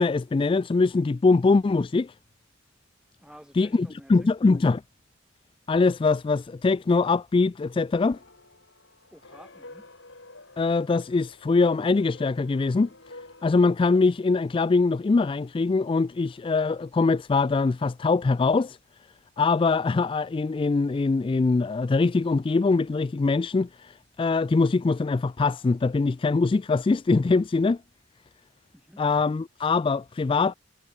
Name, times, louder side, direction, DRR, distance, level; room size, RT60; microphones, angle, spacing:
voice 1, 0.0-2.1 3.6-4.8 5.7-8.2 10.6-12.9 13.4-18.8 19.4-27.8 29.0-30.5, left 3 dB, 25° left, 0.3 m, -23 dB
voice 2, 3.2-4.3 9.1-9.9 28.7-29.0, equal, 5° right, 5.0 m, -51 dB
sound 1, 8.0-13.5, left 2 dB, 70° left, 7.5 m, -50 dB
head